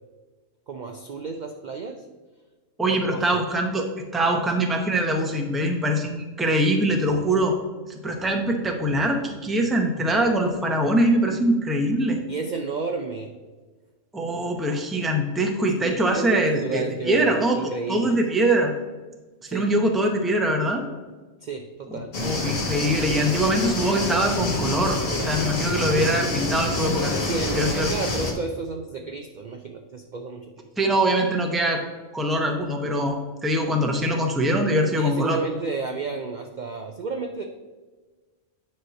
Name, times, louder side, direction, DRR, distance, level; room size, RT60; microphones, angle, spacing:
voice 1, 0.7-2.0 2.9-3.4 12.3-13.3 15.8-18.2 19.4-19.7 21.4-22.2 27.1-30.7 35.0-37.4, right 4 dB, 55° right, 5 dB, 0.5 m, -32 dB
voice 2, 2.8-3.8 4.1-7.6 7.9-12.2 14.1-17.6 17.9-18.7 19.4-20.8 21.9-27.1 27.5-27.9 30.8-31.8 32.1-33.2 33.4-35.4, right 1 dB, ahead, 3 dB, 0.6 m, -23 dB
sound 1, 22.1-28.3, left 2 dB, 55° left, 1.6 m, -27 dB
9.1 x 3.2 x 5.7 m, 1.3 s
omnidirectional pair, 1.3 m